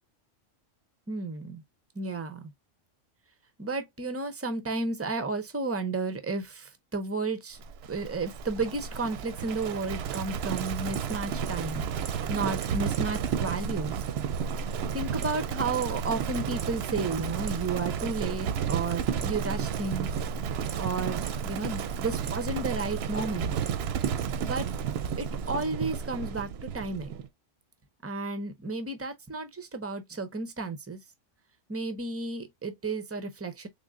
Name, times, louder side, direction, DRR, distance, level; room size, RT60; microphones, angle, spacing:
voice 1, 1.1-1.6 1.9-2.5 3.6-7.6 7.9-11.9 12.3-14.1 14.9-20.1 20.8-23.5 24.4-24.7 25.2-27.1 28.0-31.0 31.7-33.7, right 3 dB, 20° right, 0.4 m, -32 dB
Livestock farm animals working animals, 7.6-27.3, right 7 dB, 65° right, 0.7 m, -32 dB
3.7 x 3.7 x 2.3 m
omnidirectional pair, 1.3 m